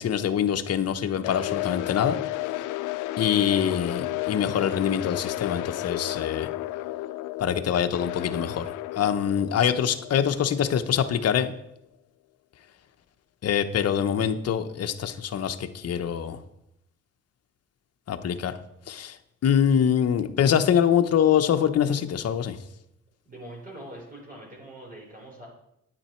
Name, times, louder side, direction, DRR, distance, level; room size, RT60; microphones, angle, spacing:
voice 1, 0.0-2.2 3.2-6.5 7.4-11.5 13.4-16.4 18.1-18.6 18.9-19.2 19.4-22.6, left 8 dB, 55° left, 8 dB, 0.9 m, -24 dB
sound 1, 1.2-11.3, left 16 dB, 90° left, 0.5 m, -32 dB
voice 2, 23.3-25.5, right 1 dB, 30° right, -3 dB, 4.0 m, -43 dB
10.0 x 8.9 x 4.4 m, 0.81 s
cardioid pair, 90°, 30 cm